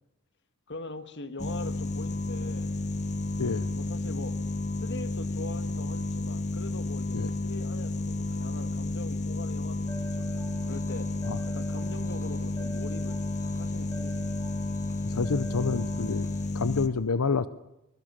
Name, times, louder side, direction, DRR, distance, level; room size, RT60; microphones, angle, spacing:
voice 1, 0.7-2.8 3.7-4.4 4.8-11.2 11.5-14.4, left 2 dB, 55° left, 9 dB, 1.7 m, -42 dB
sound 1, 1.4-16.9, left 2 dB, 35° left, 1.3 m, -31 dB
sound 2, 9.8-16.5, right 2 dB, 15° left, 6.6 m, -46 dB
voice 2, 15.0-16.3 16.5-17.5, left 4 dB, 85° left, 14 dB, 0.8 m, -28 dB
25.0 x 21.5 x 7.4 m, 0.91 s
head